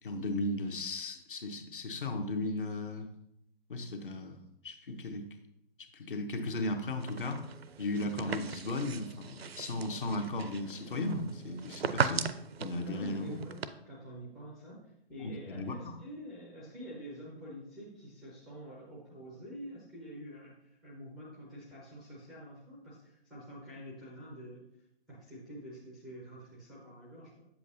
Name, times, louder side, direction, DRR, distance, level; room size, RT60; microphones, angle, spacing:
voice 1, 0.0-3.1 3.7-5.2 5.9-7.5 7.8-12.3 12.6-13.4 15.2-16.0, left 2 dB, 55° left, 6 dB, 1.0 m, -36 dB
sound 1, 7.0-13.7, right 6 dB, 70° right, 0.5 m, -38 dB
voice 2, 12.7-24.6 25.1-27.5, equal, ahead, -4 dB, 0.4 m, -47 dB
8.0 x 7.4 x 2.7 m, 0.78 s
figure-of-eight pair, 130°, 31 cm